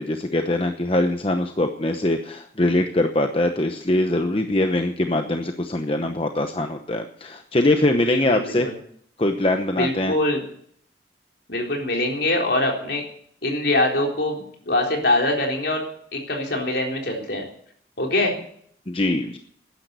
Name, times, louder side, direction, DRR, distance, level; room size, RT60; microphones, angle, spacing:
voice 1, 0.0-8.7 9.2-10.1 18.9-19.4, left 1 dB, 30° left, 6 dB, 0.9 m, -22 dB
voice 2, 8.0-8.7 9.7-10.4 11.5-13.0 13.4-15.8 16.1-17.4 18.0-18.3, left 1 dB, 65° left, 1 dB, 3.9 m, -23 dB
13.0 x 10.5 x 8.2 m, 0.64 s
head